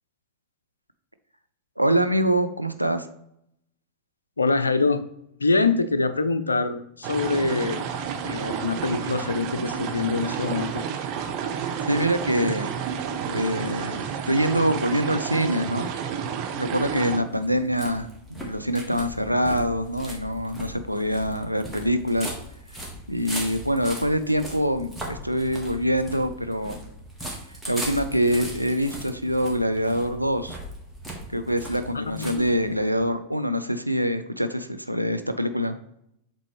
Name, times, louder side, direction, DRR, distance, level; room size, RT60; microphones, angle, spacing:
voice 1, 1.8-3.1 11.9-12.7 13.3-15.9 16.5-22.3 23.1-26.8 27.7-30.6 31.3-35.8, equal, 90° right, 9 dB, 0.4 m, -25 dB
voice 2, 4.4-5.0 5.4-7.8 8.2-10.8 31.9-32.4, left 3 dB, 75° left, 12 dB, 0.4 m, -24 dB
sound 1, 7.0-17.2, right 7 dB, 40° right, 0.7 m, -30 dB
sound 2, 16.5-33.0, equal, ahead, 1.7 m, -39 dB
7.4 x 4.0 x 3.2 m, 0.76 s
figure-of-eight pair, 90°, 0 cm